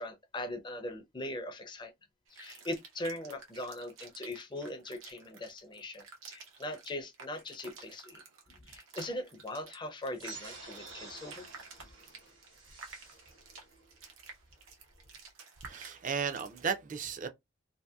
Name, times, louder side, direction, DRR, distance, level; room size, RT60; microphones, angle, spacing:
voice 1, 0.0-1.9 2.3-8.2 8.6-11.5, left 1 dB, 25° left, 0.5 m, -40 dB
sound 1, 2.3-16.7, right 5 dB, 85° right, 0.8 m, -52 dB
sound 2, 10.1-15.2, right 3 dB, 65° right, 1.3 m, -51 dB
voice 2, 15.6-17.3, right 6 dB, 40° right, 0.4 m, -35 dB
2.7 x 2.6 x 2.3 m
head